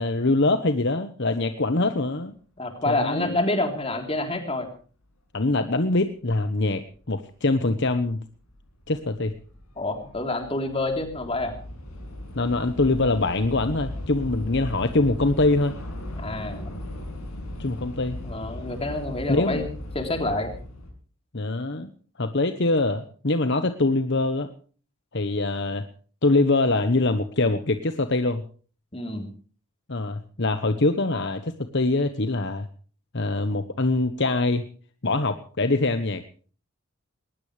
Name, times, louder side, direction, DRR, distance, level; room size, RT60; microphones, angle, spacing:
voice 1, 0.0-2.3 2.9-3.4 5.3-8.2 8.9-9.3 12.3-15.7 17.6-18.2 19.3-19.6 21.3-21.9 22.2-24.5 25.1-25.9 26.2-28.4 29.9-32.7 33.1-34.7 35.0-36.2, left 2 dB, 55° left, 9 dB, 1.1 m, -24 dB
voice 2, 2.6-4.7 9.8-11.5 16.2-16.8 18.2-19.6 20.0-20.5 28.9-29.3, left 2 dB, 25° left, 4 dB, 3.6 m, -27 dB
Train / Subway metro underground, 6.9-7.0 7.8-8.1 8.3-20.9, left 1 dB, 90° left, 6.9 m, -37 dB
20.5 x 19.0 x 3.3 m, 0.41 s
head